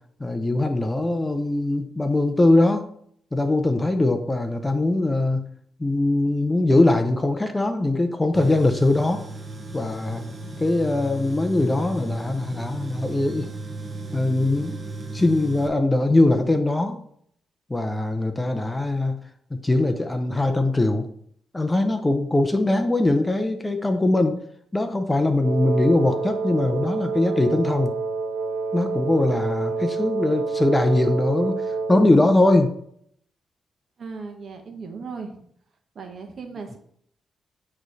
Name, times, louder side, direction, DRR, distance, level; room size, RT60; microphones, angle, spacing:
voice 1, 0.2-2.9 3.3-5.5 5.8-9.3 9.7-10.2 10.6-13.5 14.1-14.8 15.1-17.0 17.7-19.2 19.5-21.1 21.5-24.4 24.7-27.9 28.7-32.7, left 2 dB, 15° left, 6 dB, 0.6 m, -21 dB
Tools, 8.3-15.7, right 1 dB, 25° right, 0.9 m, -35 dB
Wind instrument woodwind instrument, 25.4-32.2, right 4 dB, 85° right, 0.8 m, -27 dB
voice 2, 34.0-35.4 35.9-36.8, right 4 dB, 50° right, 4 dB, 1.1 m, -37 dB
8.5 x 3.2 x 4.0 m, 0.66 s
cardioid pair, 115°, 0 cm